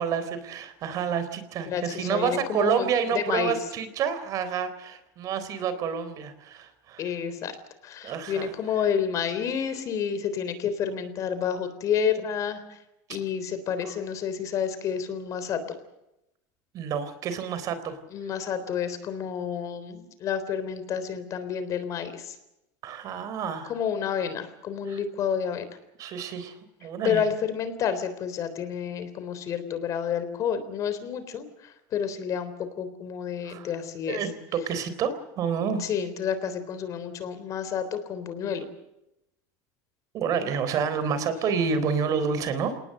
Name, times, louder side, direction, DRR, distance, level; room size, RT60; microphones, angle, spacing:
voice 1, 0.0-7.0 8.0-8.5 16.7-18.0 22.8-23.7 24.9-25.0 26.0-26.6 26.8-27.2 33.5-33.7 34.1-35.9 40.1-42.8, right 6 dB, 45° right, 12 dB, 3.8 m, -29 dB
voice 2, 1.7-3.6 7.0-7.6 7.8-12.8 13.1-15.8 18.1-22.4 23.6-25.8 27.0-34.3 35.8-38.7, left 7 dB, 40° left, 11 dB, 3.7 m, -30 dB
28.5 x 19.0 x 6.7 m, 0.87 s
cardioid pair, 150°, 8 cm